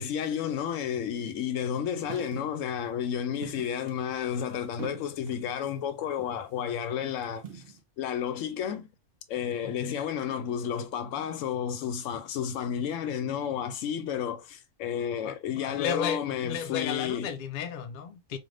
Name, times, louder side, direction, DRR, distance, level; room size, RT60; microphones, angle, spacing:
voice 1, 0.0-7.6 8.0-8.9 9.3-17.3, left 8 dB, 85° left, 0.9 m, -31 dB
sound 1, 2.0-2.7 3.4-5.6 6.2-6.5 7.0-7.8, right 7 dB, 55° right, 0.9 m, -45 dB
voice 2, 15.2-18.4, left 7 dB, 60° left, 0.5 m, -34 dB
3.2 x 2.5 x 2.5 m
omnidirectional pair, 1.3 m